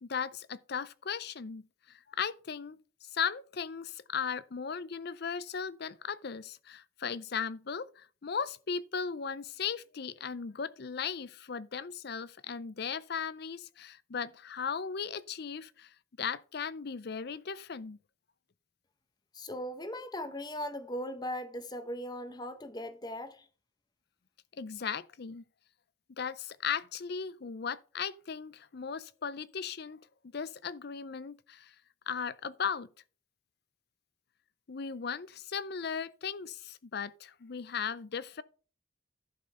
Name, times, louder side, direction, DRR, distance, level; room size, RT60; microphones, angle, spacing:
voice 1, 0.0-18.0 24.6-25.4 26.2-30.0 30.3-31.7 32.1-32.9 34.7-38.4, left 6 dB, 50° left, 0.5 m, -37 dB
voice 2, 19.3-23.5, equal, 20° left, 0.9 m, -38 dB
11.5 x 5.4 x 5.6 m
head